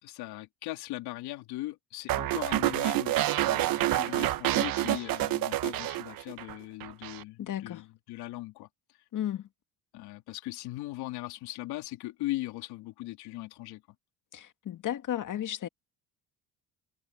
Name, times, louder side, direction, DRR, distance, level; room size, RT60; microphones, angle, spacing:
voice 1, 0.0-8.7 9.9-13.8, left 17 dB, 80° left, 3.6 m, -39 dB
sound 1, 2.1-6.5 6.8-7.2, right 14 dB, 65° right, 1.2 m, -28 dB
voice 2, 7.4-7.8 9.1-9.5 14.3-15.7, left 11 dB, 55° left, 2.1 m, -34 dB
cardioid pair, 90°, 38 cm